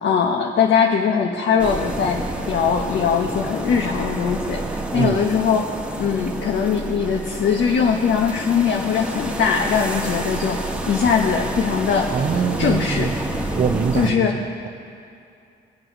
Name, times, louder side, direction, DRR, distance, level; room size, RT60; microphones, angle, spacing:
voice 1, 0.0-5.7 6.0-12.1 12.6-13.1 13.9-14.4, left 6 dB, 65° left, 2 dB, 1.1 m, -21 dB
sound 1, 1.6-14.1, right 1 dB, 5° right, 1.6 m, -29 dB
voice 2, 4.9-5.2 12.1-13.1 13.5-14.7, right 7 dB, 45° right, 6 dB, 0.7 m, -24 dB
23.0 x 7.7 x 6.0 m, 2.6 s
cardioid pair, 90°, 20 cm